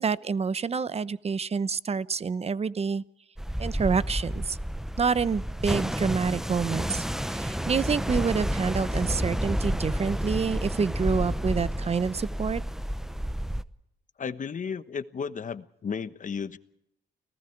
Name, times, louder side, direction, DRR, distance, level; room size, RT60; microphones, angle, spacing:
voice 1, 0.0-3.0 3.6-4.6 5.0-12.6, right 5 dB, 30° right, 17 dB, 0.8 m, -28 dB
sound 1, 3.4-13.6, equal, ahead, 0.8 m, -30 dB
voice 2, 14.2-16.6, left 6 dB, 40° left, 13 dB, 1.2 m, -34 dB
30.0 x 19.0 x 4.7 m, 0.80 s
cardioid pair, 90°, 20 cm